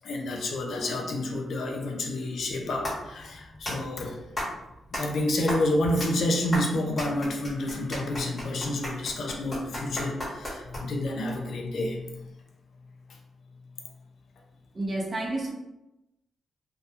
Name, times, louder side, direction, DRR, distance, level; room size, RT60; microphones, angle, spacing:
voice 1, 0.0-4.2 4.9-12.3, left 1 dB, 60° left, 2 dB, 0.4 m, -29 dB
sound 1, 2.4-11.1, left 1 dB, 15° left, 1.0 m, -36 dB
voice 2, 14.7-15.5, right 2 dB, 35° right, -2 dB, 0.5 m, -30 dB
2.2 x 2.1 x 2.8 m, 0.92 s
wide cardioid pair, 150°, 0 cm